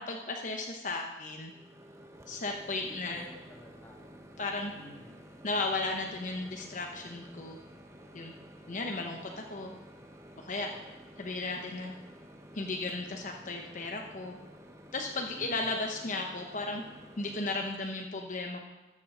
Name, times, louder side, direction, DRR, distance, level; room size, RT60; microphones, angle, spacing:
voice 1, 0.0-1.5 2.3-3.2 4.4-4.7 5.4-7.6 8.1-8.3 8.7-9.7 10.4-10.7 11.2-11.9 12.5-14.4 14.9-16.8 17.2-18.6, left 3 dB, 45° left, 2 dB, 0.9 m, -35 dB
Microwave oven, 1.5-17.7, equal, 15° right, 0.9 m, -52 dB
voice 2, 2.8-4.2 4.8-5.2 8.6-8.8 10.7-10.9 15.4-15.7, equal, 15° left, 0 dB, 1.8 m, -51 dB
13.5 x 7.5 x 5.4 m, 1.2 s
head